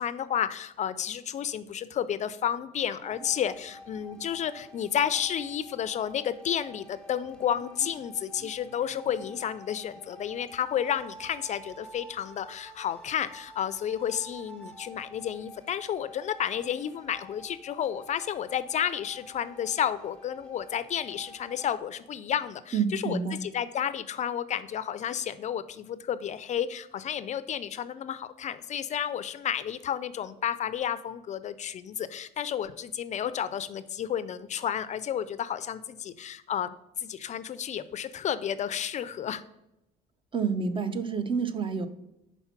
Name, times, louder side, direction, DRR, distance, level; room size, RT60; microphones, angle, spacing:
voice 1, 0.0-36.7 37.0-39.4, left 9 dB, 45° left, 14 dB, 0.4 m, -31 dB
sound 1, 2.9-5.9 7.1-9.4, right 4 dB, 75° right, 0.9 m, -53 dB
sound 2, 3.0-21.8, equal, 5° left, 0.8 m, -49 dB
voice 2, 22.7-23.4 40.3-41.9, right 5 dB, 30° right, 10 dB, 0.6 m, -28 dB
5.7 x 4.1 x 5.7 m, 0.89 s
cardioid pair, 110°, 17 cm